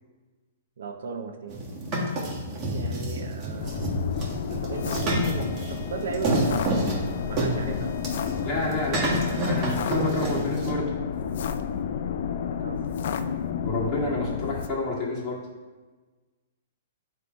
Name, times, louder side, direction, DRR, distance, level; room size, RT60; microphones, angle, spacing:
voice 1, 0.8-1.6 2.5-4.1 4.5-8.0 12.4-12.8, right 5 dB, 75° right, 7 dB, 0.7 m, -36 dB
sound 1, 1.5-10.7, equal, 30° right, 1.5 m, -29 dB
sound 2, 3.6-14.7, left 7 dB, 60° left, 0.4 m, -31 dB
sound 3, 4.7-10.7, left 3 dB, 90° left, 0.9 m, -48 dB
voice 2, 8.4-10.9 13.6-15.4, left 2 dB, 30° left, -5 dB, 1.9 m, -29 dB
7.7 x 3.2 x 4.5 m, 1.3 s
hypercardioid pair, 145°, 0 cm